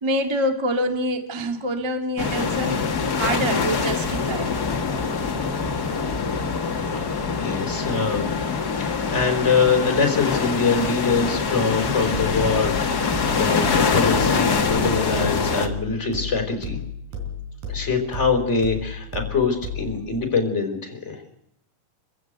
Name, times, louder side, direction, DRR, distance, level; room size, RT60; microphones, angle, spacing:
voice 1, 0.0-2.8 3.2-4.5, equal, 25° right, 5 dB, 0.6 m, -25 dB
sound 1, 2.2-15.7, left 5 dB, 55° left, 1.0 m, -24 dB
voice 2, 7.4-8.3 8.8-16.8 17.7-21.2, left 4 dB, 15° left, 4 dB, 4.3 m, -24 dB
sound 2, 12.1-20.1, left 4 dB, 60° right, 5.4 m, -33 dB
27.0 x 15.5 x 8.0 m, 0.77 s
omnidirectional pair, 4.6 m